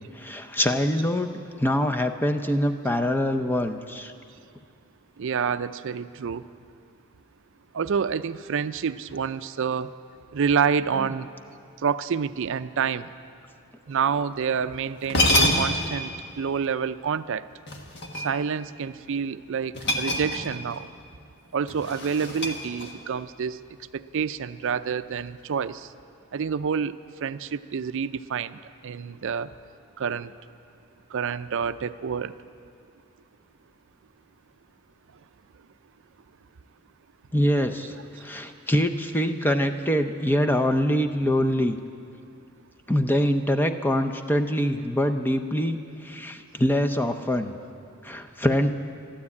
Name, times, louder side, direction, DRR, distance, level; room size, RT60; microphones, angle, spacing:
voice 1, 0.2-4.1 10.9-11.1 37.3-37.9 38.2-41.8 42.9-47.5 48.0-48.7, equal, 10° left, 7 dB, 0.6 m, -24 dB
voice 2, 5.2-6.5 7.7-9.9 10.3-11.3 11.8-13.1 13.9-17.5 18.2-20.9 21.5-23.6 23.9-25.9 26.3-26.9 27.2-29.5 30.0-30.3 31.1-32.3, right 6 dB, 60° right, 14 dB, 0.4 m, -28 dB
sound 1, 14.6-14.7 15.0-15.9 17.7-18.6 19.7-20.7 21.0-21.2 21.7-23.1, left 1 dB, 55° left, 1.5 m, -26 dB
13.0 x 12.0 x 8.5 m, 2.5 s
head